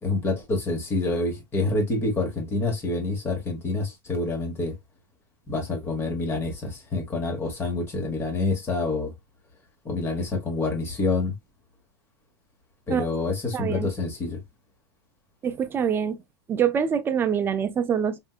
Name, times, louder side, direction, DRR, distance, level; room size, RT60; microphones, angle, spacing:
voice 1, 0.0-4.8 5.5-9.1 9.8-11.3 12.9-14.4, left 3 dB, 20° left, 1.2 m, -27 dB
voice 2, 13.5-13.9 15.4-16.2 16.5-18.2, right 7 dB, 15° right, 0.4 m, -25 dB
3.6 x 2.6 x 2.4 m
supercardioid pair, 140°, 13 cm